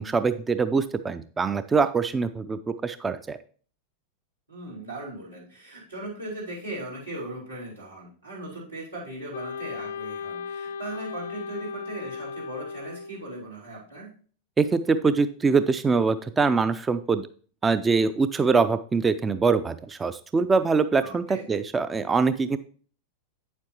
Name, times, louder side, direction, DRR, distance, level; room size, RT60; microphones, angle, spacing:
voice 1, 0.0-3.4 14.6-17.3 17.6-22.6, right 4 dB, 15° right, 12 dB, 0.4 m, -23 dB
voice 2, 4.5-14.1 21.0-21.4, right 2 dB, 85° right, -7 dB, 4.4 m, -38 dB
Wind instrument woodwind instrument, 9.3-13.3, left 5 dB, 60° left, 0.3 m, -36 dB
9.0 x 7.4 x 2.9 m, 0.42 s
figure-of-eight pair, 90°, 0 cm